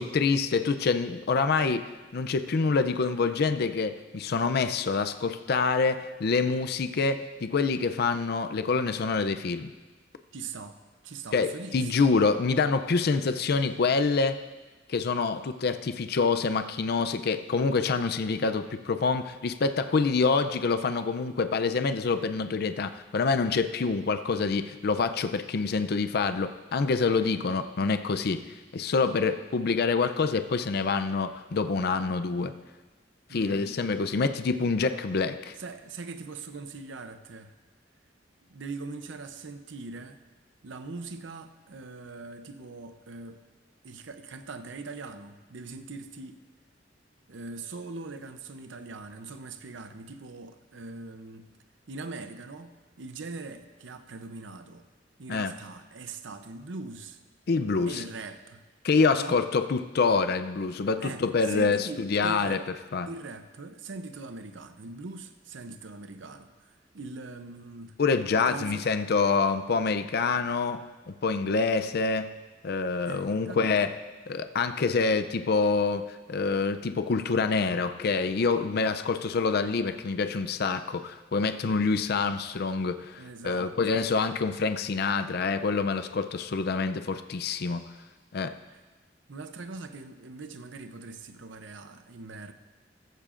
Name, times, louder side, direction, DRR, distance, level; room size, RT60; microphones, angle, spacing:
voice 1, 0.0-9.7 11.3-14.4 14.9-28.4 28.7-32.5 33.3-35.5 55.3-55.5 57.5-58.0 58.8-62.6 62.9-63.1 68.0-72.3 72.6-73.9 74.3-87.8 88.3-88.5, left 4 dB, 60° left, 9 dB, 0.5 m, -26 dB
voice 2, 10.3-10.8 11.0-12.1 33.3-33.6 35.6-37.5 38.5-40.2 40.6-43.4 43.8-46.4 47.3-51.5 51.9-54.9 55.2-57.2 57.9-58.6 59.1-59.4 61.0-62.6 63.1-68.0 68.3-68.9 73.1-73.9 83.2-83.8 88.7-88.8 89.3-92.5, right 3 dB, 90° right, 8 dB, 0.7 m, -41 dB
15.0 x 14.0 x 2.5 m, 1.3 s
head